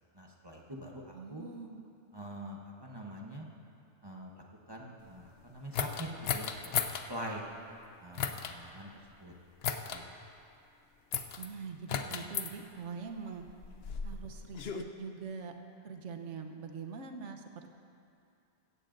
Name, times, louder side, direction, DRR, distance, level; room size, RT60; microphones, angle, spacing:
voice 1, 0.1-1.4 2.1-3.5 4.0-7.4 8.0-8.9 9.2-9.3 9.9-10.2, right 1 dB, 20° right, -2 dB, 0.9 m, -44 dB
voice 2, 1.1-1.9 11.4-13.5 14.0-15.5 15.8-17.7, right 5 dB, 80° right, 4 dB, 1.2 m, -43 dB
sound 1, 5.7-7.1 8.1-8.5 9.6-10.0 11.1-11.5 11.9-12.5 13.4-14.8, left 7 dB, 60° left, 0.8 m, -35 dB
16.0 x 15.0 x 2.6 m, 2.5 s
omnidirectional pair, 1.2 m